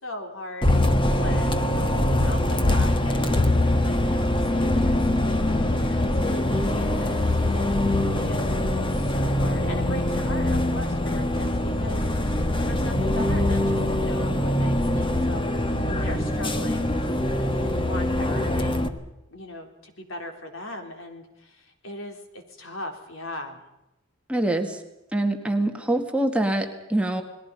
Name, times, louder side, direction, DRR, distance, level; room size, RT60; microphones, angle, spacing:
voice 1, 0.0-3.4 3.7-17.0 17.5-19.0 19.3-23.6, left 1 dB, 70° left, 4 dB, 4.0 m, -39 dB
Bus, 0.6-18.9, left 1 dB, 25° left, 1.5 m, -23 dB
voice 2, 24.3-24.8 25.1-27.2, right 1 dB, 5° right, 4 dB, 2.0 m, -24 dB
29.5 x 20.5 x 5.4 m, 0.91 s
head